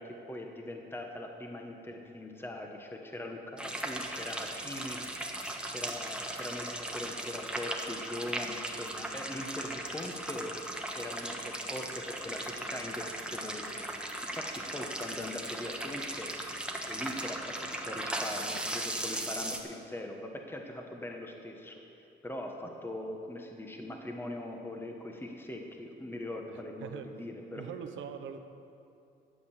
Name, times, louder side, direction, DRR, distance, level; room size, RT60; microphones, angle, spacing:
voice 1, 0.0-5.4 5.6-10.5 10.9-13.8 14.2-16.3 16.9-21.8 22.2-27.6, left 1 dB, 10° left, 2 dB, 1.3 m, -41 dB
sound 1, 3.6-19.6, right 1 dB, 5° right, 1.3 m, -37 dB
voice 2, 27.5-28.4, right 8 dB, 80° right, 8 dB, 0.9 m, -41 dB
12.0 x 7.9 x 7.2 m, 2.7 s
cardioid pair, 90°, 20 cm